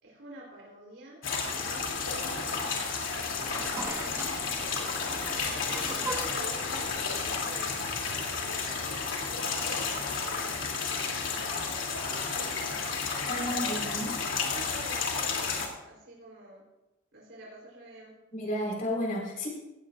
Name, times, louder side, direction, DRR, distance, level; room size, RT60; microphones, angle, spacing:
voice 1, 0.0-2.8 3.4-4.4 4.7-5.5 5.9-12.7 13.4-14.1 14.5-16.6 17.1-18.1, right 1 dB, 75° right, -4 dB, 3.8 m, -49 dB
sound 1, 1.2-15.7, left 5 dB, 90° left, 3.0 m, -32 dB
sound 2, 3.0-8.3, right 2 dB, 15° right, 1.4 m, -41 dB
voice 2, 13.3-14.1 18.3-19.5, equal, 45° left, -1 dB, 4.7 m, -32 dB
17.5 x 16.0 x 2.6 m, 1.0 s
head